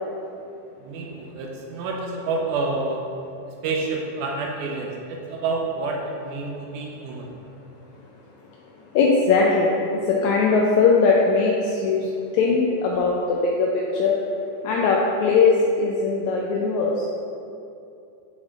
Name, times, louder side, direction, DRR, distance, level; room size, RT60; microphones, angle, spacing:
voice 1, 0.8-3.0 3.6-7.3, right 3 dB, 80° right, -1 dB, 2.0 m, -28 dB
voice 2, 8.9-9.7 10.1-12.0 12.3-14.1 14.6-17.1, left 4 dB, 85° left, -2 dB, 1.6 m, -20 dB
6.5 x 4.8 x 3.6 m, 2.6 s
omnidirectional pair, 3.8 m